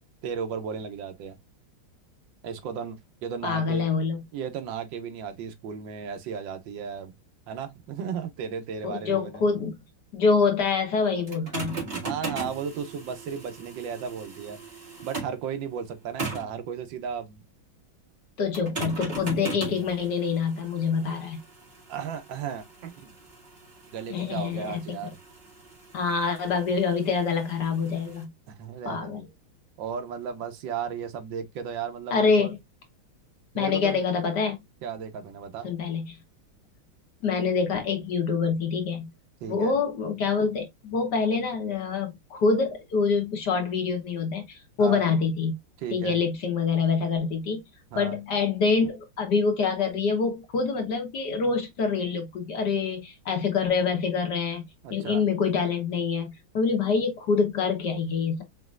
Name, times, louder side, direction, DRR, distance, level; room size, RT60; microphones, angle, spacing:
voice 1, 0.2-1.4 2.4-4.0 4.3-7.1 7.5-9.5 11.9-14.6 15.0-17.4 21.9-23.1 23.9-25.2 28.5-29.2 29.8-32.5 33.5-34.0 34.8-35.7 39.4-39.7 44.8-45.0 45.8-46.2 47.9-48.2 54.8-55.2, right 7 dB, 70° right, 1.4 m, -35 dB
voice 2, 3.4-4.2 8.8-9.8 10.1-11.8 18.4-21.4 24.1-24.8 25.9-28.3 28.8-29.2 32.1-32.6 33.5-34.6 35.6-36.2 37.2-39.1 39.4-45.6 45.9-47.6 47.9-54.6 54.9-58.4, left 5 dB, 55° left, 1.6 m, -26 dB
sound 1, 11.3-15.4 16.2-16.6 18.5-28.2, right 4 dB, 30° right, 2.0 m, -39 dB
5.3 x 3.0 x 2.4 m
omnidirectional pair, 2.3 m